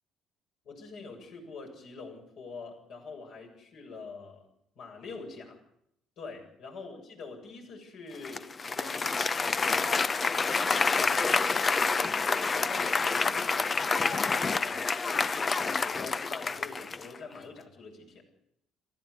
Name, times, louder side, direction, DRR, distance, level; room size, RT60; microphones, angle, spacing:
voice 1, 0.6-4.4 4.8-5.6 6.2-10.0 10.4-12.2 12.5-18.2, left 4 dB, 55° left, 1 dB, 7.7 m, -45 dB
Applause, 8.2-17.2, left 4 dB, 30° left, 1.0 m, -28 dB
26.5 x 15.0 x 9.8 m, 0.74 s
figure-of-eight pair, 50°, 0 cm